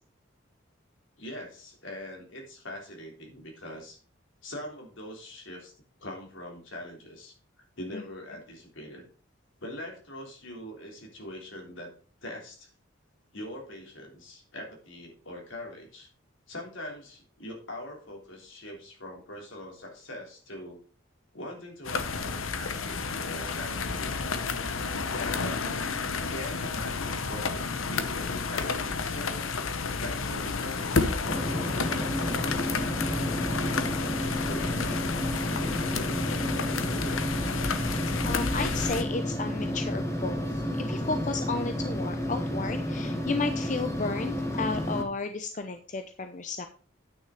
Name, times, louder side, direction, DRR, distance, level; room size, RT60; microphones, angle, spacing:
voice 1, 1.2-4.0 4.4-5.7 6.0-7.3 7.8-9.1 9.6-11.9 12.2-12.7 13.3-16.1 16.5-20.8 21.3-24.2 25.1-25.9 26.2-29.5 30.0-33.8 34.5-35.1 35.6-37.3, left 1 dB, 70° left, 1 dB, 3.4 m, -42 dB
sound 1, 21.8-39.0, left 4 dB, 85° left, 1.0 m, -31 dB
sound 2, 31.2-45.0, equal, 15° left, 1.3 m, -31 dB
voice 2, 38.2-40.5 40.9-46.7, left 3 dB, 40° left, 8 dB, 0.6 m, -33 dB
9.4 x 6.3 x 5.0 m, 0.40 s
head